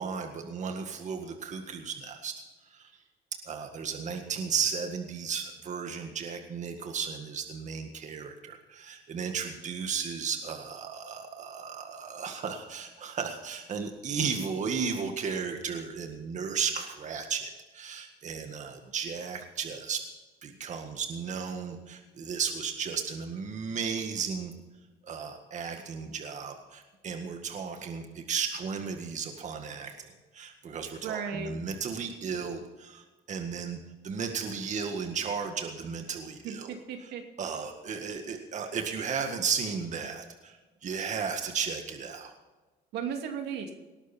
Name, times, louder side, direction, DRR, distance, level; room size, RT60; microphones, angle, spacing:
voice 1, 0.0-2.3 2.7-2.9 3.5-20.0 20.4-24.5 25.0-37.1 37.4-42.3, right 6 dB, 45° right, 5 dB, 1.9 m, -34 dB
voice 2, 31.0-31.6 36.4-37.2 42.9-43.7, right 7 dB, 80° right, 4 dB, 2.7 m, -35 dB
19.0 x 12.5 x 4.4 m, 1.2 s
cardioid pair, 110°, 17 cm